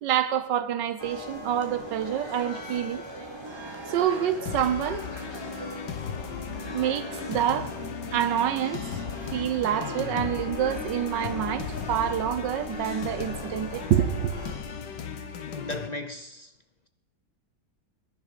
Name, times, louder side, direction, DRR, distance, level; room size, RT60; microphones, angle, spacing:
voice 1, 0.0-3.0 3.9-5.0 6.7-7.7 8.1-8.8 9.3-14.3, right 10 dB, 90° right, 1.6 m, -27 dB
sound 1, 1.0-14.6, equal, 15° right, 3.4 m, -39 dB
sound 2, 4.5-15.9, left 8 dB, 75° left, 1.8 m, -36 dB
voice 2, 15.5-16.5, left 2 dB, 55° left, 0.4 m, -36 dB
20.5 x 10.5 x 5.3 m
omnidirectional pair, 1.9 m